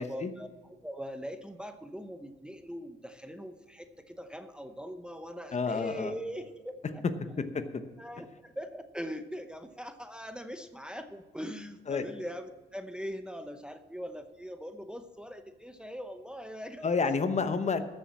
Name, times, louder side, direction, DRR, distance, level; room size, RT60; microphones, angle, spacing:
voice 1, 0.0-7.0 7.4-7.5 8.0-17.0, equal, 5° right, 8 dB, 0.8 m, -41 dB
voice 2, 5.5-6.1 11.9-12.0 16.8-17.9, left 4 dB, 35° left, 10 dB, 1.0 m, -29 dB
14.0 x 7.2 x 6.1 m, 1.4 s
cardioid pair, 90°, 20 cm